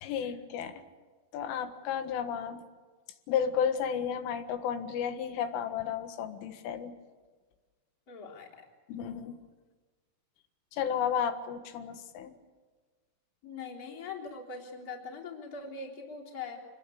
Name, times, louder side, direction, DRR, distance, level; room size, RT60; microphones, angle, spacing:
voice 1, 0.0-0.8 1.3-2.6 3.3-6.9 8.9-9.4 10.7-12.4, left 8 dB, 90° left, 8 dB, 4.1 m, -32 dB
voice 2, 8.1-8.7 13.4-16.6, left 4 dB, 20° left, -1 dB, 3.3 m, -42 dB
26.0 x 21.0 x 8.5 m, 1.4 s
omnidirectional pair, 5.5 m